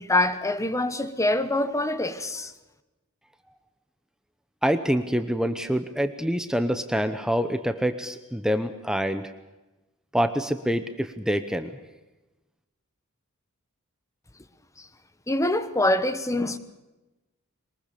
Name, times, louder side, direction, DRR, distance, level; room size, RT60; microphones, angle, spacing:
voice 1, 0.0-2.5 14.8-14.9 15.3-16.6, left 1 dB, 15° left, 1.2 m, -25 dB
voice 2, 4.6-9.3 10.1-11.7, equal, 5° right, 0.8 m, -26 dB
22.5 x 20.5 x 6.8 m
head